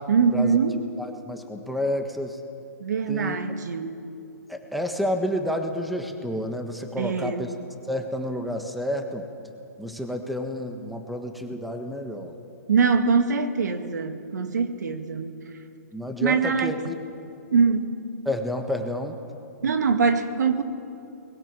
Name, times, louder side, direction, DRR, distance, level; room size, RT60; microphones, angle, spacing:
voice 1, 0.1-0.8 2.8-4.0 7.0-7.4 12.7-15.3 16.2-16.7 17.5-17.9 19.6-20.6, right 5 dB, 80° right, 8 dB, 2.0 m, -23 dB
voice 2, 1.0-2.4 3.1-3.4 4.5-7.5 7.8-9.3 9.8-12.4 15.9-16.9 18.2-19.2, left 1 dB, ahead, 5 dB, 1.4 m, -30 dB
22.5 x 21.0 x 7.6 m, 2.7 s
hypercardioid pair, 145°, 9 cm